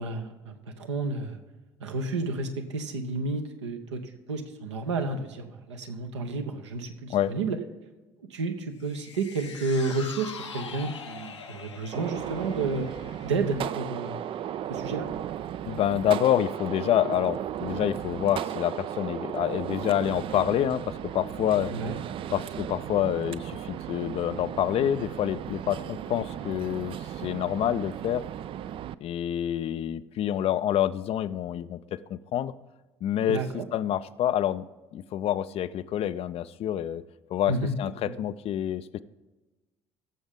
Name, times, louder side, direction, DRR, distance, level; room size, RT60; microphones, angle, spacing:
voice 1, 0.0-1.4 1.8-4.0 4.3-7.6 8.3-12.9 13.2-14.2 14.7-15.1 21.7-21.9 33.3-33.7 37.5-37.7 38.0-38.1, right 3 dB, 75° right, 5 dB, 0.9 m, -31 dB
sound 1, 8.8-15.3 15.6-15.7, left 6 dB, 80° left, 0.9 m, -44 dB
Gunshot gunfire, 11.9-28.9, right 10 dB, 35° right, 0.4 m, -35 dB
voice 2, 15.6-21.7 22.3-28.3 29.0-32.5 33.0-33.4 33.7-34.7 34.9-37.0 37.3-39.0, left 11 dB, 40° left, 15 dB, 0.4 m, -27 dB
16.5 x 7.1 x 3.6 m, 1.2 s
figure-of-eight pair, 55°, 15 cm